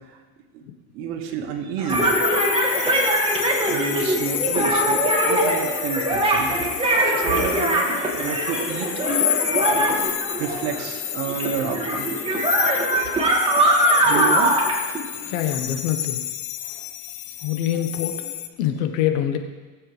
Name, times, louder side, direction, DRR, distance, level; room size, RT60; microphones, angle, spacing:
voice 1, 0.9-2.2 3.7-9.1 10.4-12.1 13.6-13.7 14.0-14.6, right 6 dB, 75° right, 4 dB, 1.9 m, -30 dB
sound 1, 1.8-11.0 11.3-15.6, right 1 dB, 15° right, 2.1 m, -22 dB
sound 2, 1.9-18.5, left 12 dB, 45° left, 1.0 m, -29 dB
voice 2, 15.3-16.2 16.6-16.9 17.4-19.4, left 10 dB, 80° left, 6 dB, 1.4 m, -25 dB
19.5 x 7.9 x 3.4 m, 1.3 s
supercardioid pair, 115°, 42 cm